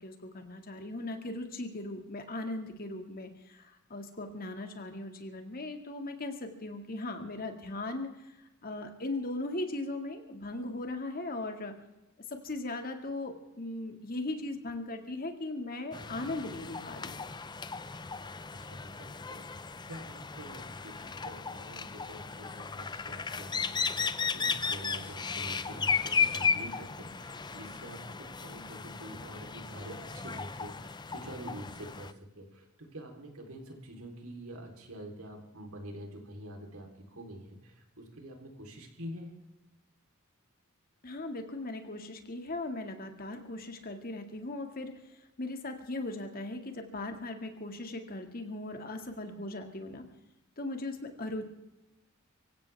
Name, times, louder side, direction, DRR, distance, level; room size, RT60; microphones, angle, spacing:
voice 1, 0.0-8.1 8.6-11.7 12.3-17.2 41.0-44.9 45.4-50.0 50.6-51.4, left 2 dB, 45° left, 5 dB, 2.1 m, -38 dB
sound 1, 15.9-32.1, left 5 dB, 20° left, 0.6 m, -35 dB
voice 2, 18.5-39.3, right 1 dB, 85° right, 2 dB, 3.7 m, -46 dB
25.0 x 16.0 x 3.5 m, 0.94 s
head